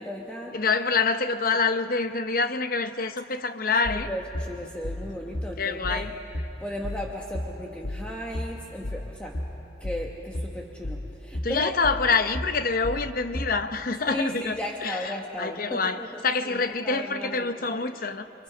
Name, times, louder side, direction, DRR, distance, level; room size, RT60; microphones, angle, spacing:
voice 1, 0.0-0.5 3.9-6.1 6.6-9.4 9.8-11.8 14.1-17.7 17.9-18.0, equal, 5° left, 1.2 m, -35 dB
voice 2, 0.5-4.1 5.6-6.1 11.4-18.3, left 4 dB, 50° left, 0.8 m, -26 dB
sound 1, 3.9-13.6, left 1 dB, 80° left, 1.4 m, -33 dB
29.5 x 24.5 x 5.1 m
head